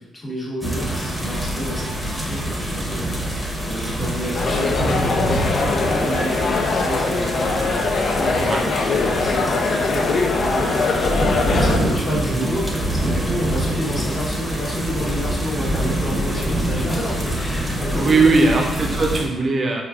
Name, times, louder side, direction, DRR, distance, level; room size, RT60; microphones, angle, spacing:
voice 1, 0.0-3.1 3.6-11.3 11.6-18.8, equal, 25° left, -4 dB, 1.0 m, -29 dB
sound 1, 0.6-19.3, right 1 dB, 10° right, 0.8 m, -25 dB
sound 2, 0.6-8.2 8.5-19.2, right 1 dB, 85° right, 0.8 m, -39 dB
sound 3, 4.3-11.8, left 3 dB, 55° left, 0.4 m, -22 dB
voice 2, 17.9-19.8, right 3 dB, 40° right, 1 dB, 0.6 m, -19 dB
4.7 x 2.4 x 2.3 m, 1.2 s
cardioid pair, 90°, 0 cm